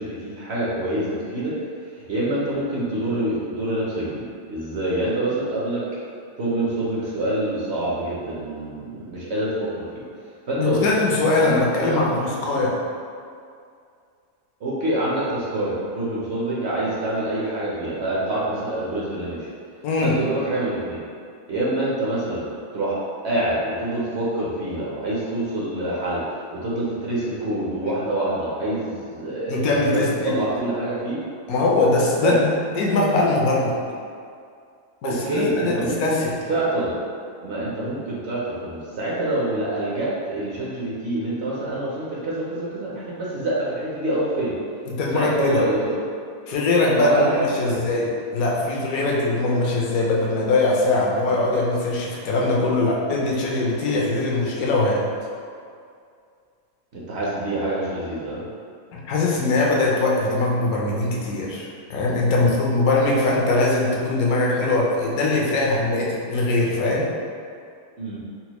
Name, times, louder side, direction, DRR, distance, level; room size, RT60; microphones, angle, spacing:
voice 1, 0.0-1.5 2.1-5.8 6.4-10.0 10.5-10.9 11.4-11.5 11.9-12.0 14.6-19.5 20.0-21.0 21.5-26.2 26.5-31.2 32.2-32.4 35.0-36.2 36.5-36.9 37.4-44.5 45.1-45.9 47.0-47.8 56.9-58.5 62.4-62.5 68.0-68.2, right 1 dB, 60° right, -7 dB, 0.8 m, -26 dB
voice 2, 10.6-12.7 19.8-20.2 29.5-30.3 31.5-33.7 35.0-35.8 36.0-36.3 44.9-45.6 46.5-55.0 58.9-67.1, left 2 dB, 80° left, -3 dB, 1.1 m, -21 dB
4.2 x 2.1 x 2.9 m, 2.3 s
omnidirectional pair, 1.5 m